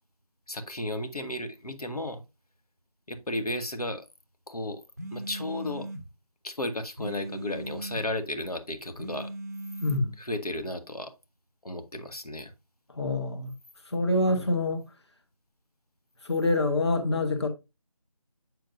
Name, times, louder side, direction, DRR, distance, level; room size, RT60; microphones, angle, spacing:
voice 1, 0.5-2.2 3.1-4.0 4.5-4.8 5.1-5.9 6.4-9.3 10.2-11.1 11.6-12.5 14.3-14.5, left 1 dB, 80° left, 1.3 m, -34 dB
sound 1, 5.0-6.1 7.0-8.1 9.0-10.1, right 1 dB, 25° right, 0.6 m, -38 dB
voice 2, 9.8-10.1 13.0-13.5 13.9-14.8 16.3-17.5, left 2 dB, 45° left, 1.1 m, -25 dB
7.9 x 6.4 x 2.6 m
figure-of-eight pair, 170°, 19 cm